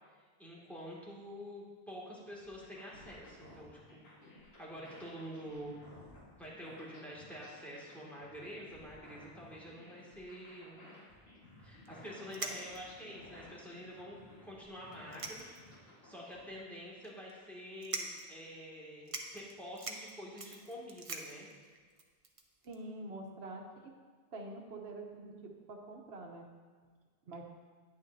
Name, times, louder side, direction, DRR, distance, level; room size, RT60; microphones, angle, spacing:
voice 1, 0.4-4.1 4.6-5.8 6.4-10.8 11.6-15.5 16.0-21.5, equal, ahead, -6 dB, 2.0 m, -47 dB
sound 1, 2.3-16.5, left 1 dB, 80° left, 1.8 m, -56 dB
sound 2, 11.8-11.9 12.3-13.0 13.6-13.7 14.0-14.1 14.9-15.8 16.2-16.3 17.0-17.3 17.8-18.3 18.7-18.8 19.1-22.8, right 3 dB, 35° right, 0.7 m, -43 dB
voice 2, 22.6-23.9 24.3-26.5 27.3-27.4, right 2 dB, 85° right, 2 dB, 1.2 m, -46 dB
9.6 x 9.5 x 2.6 m, 1.5 s
omnidirectional pair, 1.0 m